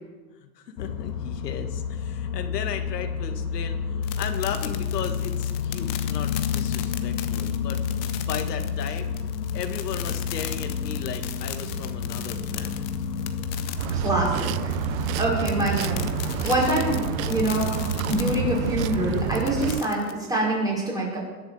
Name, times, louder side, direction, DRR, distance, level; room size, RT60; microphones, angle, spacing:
voice 1, 0.6-3.8 4.2-9.2 9.5-12.9 13.7-13.8, left 7 dB, 90° left, 6 dB, 2.0 m, -35 dB
sound 1, 0.8-19.3, left 6 dB, 70° left, 2.2 m, -30 dB
sound 2, 4.0-20.1, left 13 dB, 35° left, 1.2 m, -38 dB
voice 2, 13.5-16.1 16.4-17.7 18.1-21.2, right 1 dB, 10° right, -4 dB, 5.2 m, -26 dB
sound 3, 13.8-19.8, right 14 dB, 60° right, 0.7 m, -29 dB
20.5 x 8.0 x 7.3 m, 1.3 s
supercardioid pair, 145°, 47 cm